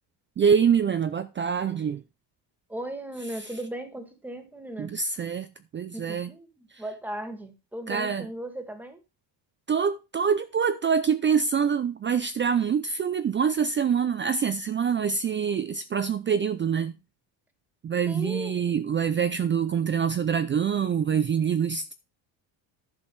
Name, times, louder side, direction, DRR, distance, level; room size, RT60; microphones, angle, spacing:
voice 1, 0.4-2.0 4.8-5.5 5.7-6.3 6.7-6.8 7.9-8.3 9.7-16.9 17.8-21.9, right 7 dB, 25° right, 0.4 m, -25 dB
voice 2, 2.7-4.9 5.9-9.0 18.1-18.6, right 1 dB, 5° right, 1.8 m, -37 dB
11.0 x 6.2 x 4.7 m
cardioid pair, 160°, 47 cm